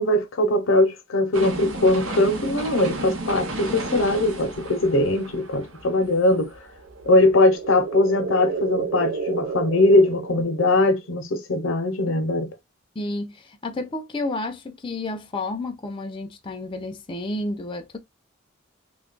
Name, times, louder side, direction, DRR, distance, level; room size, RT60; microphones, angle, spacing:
voice 1, 0.0-6.5 7.1-12.5, left 2 dB, 75° left, 0.6 m, -21 dB
sound 1, 1.3-7.3 7.7-7.8, right 2 dB, 85° right, 0.9 m, -33 dB
sound 2, 6.8-11.1, right 5 dB, 65° right, 0.5 m, -31 dB
voice 2, 13.0-18.0, left 2 dB, 25° left, 0.5 m, -31 dB
3.1 x 2.3 x 3.7 m
head